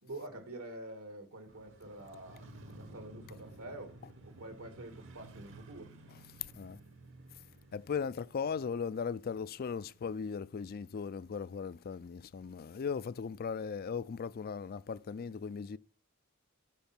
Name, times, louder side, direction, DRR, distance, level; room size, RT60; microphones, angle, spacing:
voice 1, 0.0-5.9, right 1 dB, 80° right, 2.1 m, -47 dB
Motorcycle, 1.5-11.6 11.9-12.0, right 2 dB, 60° right, 1.2 m, -55 dB
voice 2, 7.7-15.8, left 6 dB, 45° left, 0.4 m, -38 dB
10.5 x 5.3 x 5.8 m
head